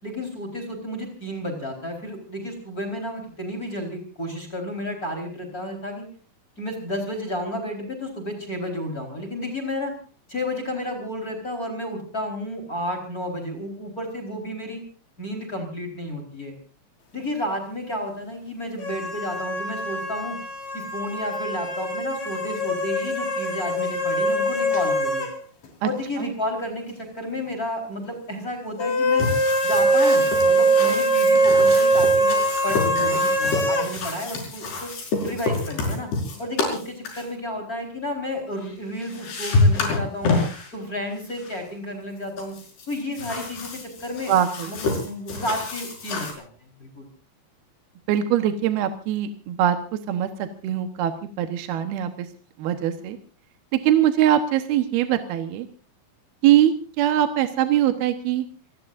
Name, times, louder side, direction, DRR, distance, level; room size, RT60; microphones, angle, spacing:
voice 1, 0.0-6.1 6.6-9.9 10.3-14.8 15.2-16.5 17.1-20.4 20.7-25.3 25.8-29.3 29.6-34.9 35.2-36.1 36.4-40.4 40.7-42.5 42.9-44.3 44.7-46.5 46.8-47.1, left 1 dB, 20° left, 5 dB, 4.5 m, -31 dB
sound 1, 18.8-25.4 25.6-25.7 28.8-33.9, right 1 dB, 45° left, 4.7 m, -22 dB
sound 2, 29.2-37.3 38.6-38.7 39.0-40.7 41.3-41.6 42.4-46.3, left 3 dB, 75° left, 7.2 m, -28 dB
voice 2, 44.3-44.8 48.1-52.3 52.6-53.2 53.7-55.7 56.4-58.5, right 11 dB, 75° right, 8 dB, 3.1 m, -22 dB
28.0 x 19.0 x 2.6 m, 0.39 s
omnidirectional pair, 4.7 m